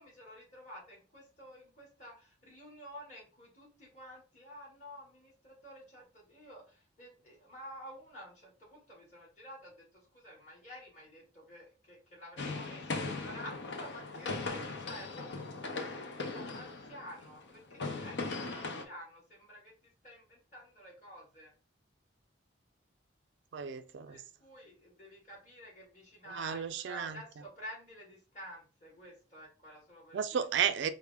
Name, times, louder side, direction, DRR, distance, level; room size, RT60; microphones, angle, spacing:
voice 1, 0.0-19.7 20.0-21.5 24.1-30.4, equal, 40° left, 2.2 m, -51 dB
sound 1, 12.4-18.8, left 3 dB, 70° left, 0.6 m, -39 dB
voice 2, 23.5-24.2 26.3-27.2 30.1-30.9, right 7 dB, 75° right, 0.4 m, -33 dB
4.7 x 2.1 x 3.4 m
head